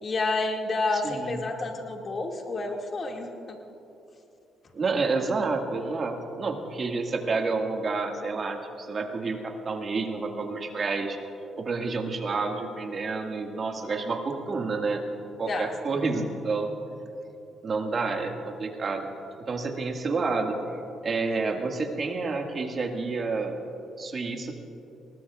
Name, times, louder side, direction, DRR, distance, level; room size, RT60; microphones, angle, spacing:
voice 1, 0.0-3.6 15.5-15.7 21.2-21.5, left 3 dB, 45° left, 1 dB, 2.3 m, -30 dB
voice 2, 0.9-1.4 4.7-11.2 11.6-15.0 15.4-16.7 17.6-19.1 19.4-20.6 21.0-23.6 24.0-24.6, right 4 dB, 45° right, 3 dB, 2.0 m, -29 dB
22.0 x 19.0 x 2.5 m, 2.9 s
supercardioid pair, 60°, 0 cm